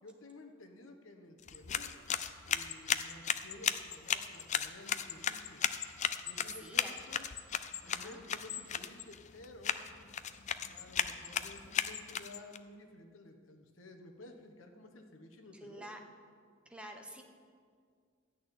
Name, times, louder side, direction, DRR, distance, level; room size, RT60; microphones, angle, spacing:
voice 1, 0.0-2.0 2.4-5.6 6.2-7.3 7.8-9.8 10.7-15.9, left 2 dB, 90° left, 5 dB, 1.3 m, -53 dB
sound 1, 1.4-12.6, left 8 dB, 35° left, 0.4 m, -36 dB
voice 2, 6.4-6.9 7.8-8.2 15.6-16.0 16.6-17.2, right 1 dB, 5° right, 3 dB, 1.1 m, -48 dB
13.0 x 6.2 x 9.1 m, 2.1 s
head